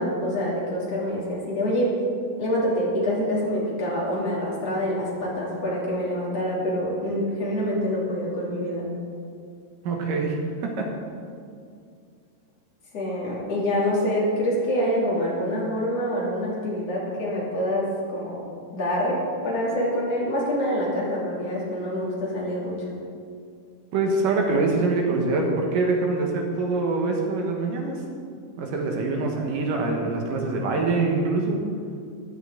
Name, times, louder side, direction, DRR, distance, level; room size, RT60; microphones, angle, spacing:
voice 1, 0.0-1.9 2.4-8.9 12.9-18.4 18.7-22.9, equal, 50° left, -5 dB, 3.9 m, -26 dB
voice 2, 9.8-10.4 10.6-10.9 23.9-28.0 28.6-31.6, right 3 dB, 80° right, 1 dB, 3.0 m, -24 dB
15.0 x 11.0 x 3.9 m, 2.3 s
omnidirectional pair, 3.8 m